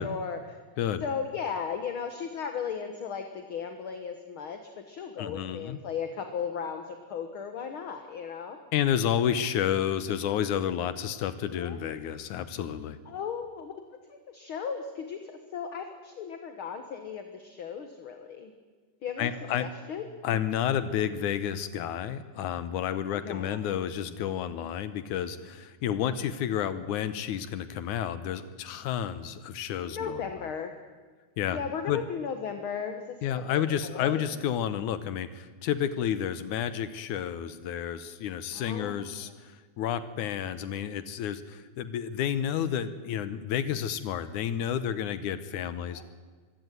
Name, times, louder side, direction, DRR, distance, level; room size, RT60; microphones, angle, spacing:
voice 1, 0.0-0.6 1.0-8.6 11.5-11.8 13.1-13.7 14.1-18.5 19.0-19.3 19.6-20.1 23.1-23.8 26.0-26.2 29.8-30.7 31.5-34.3 38.5-39.0 39.2-39.3 45.9-46.0, left 6 dB, 50° left, 6 dB, 1.9 m, -36 dB
voice 2, 5.2-5.8 8.7-13.0 19.2-19.7 20.2-30.2 31.4-31.6 31.9-32.0 33.2-46.0, left 9 dB, 75° left, 13 dB, 2.3 m, -30 dB
23.5 x 16.0 x 9.3 m, 1.4 s
omnidirectional pair, 3.6 m